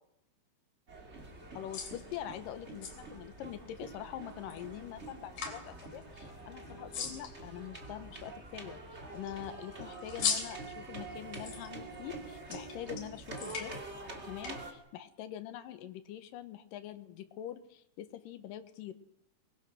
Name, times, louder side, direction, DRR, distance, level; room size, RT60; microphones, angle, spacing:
sound 1, 0.9-14.7, right 3 dB, 25° right, 1.4 m, -46 dB
sound 2, 1.2-14.5, left 6 dB, 50° left, 4.3 m, -43 dB
voice 1, 1.5-13.7 14.2-18.9, left 11 dB, 75° left, 10 dB, 2.0 m, -44 dB
22.5 x 22.0 x 6.3 m, 0.80 s
omnidirectional pair, 5.4 m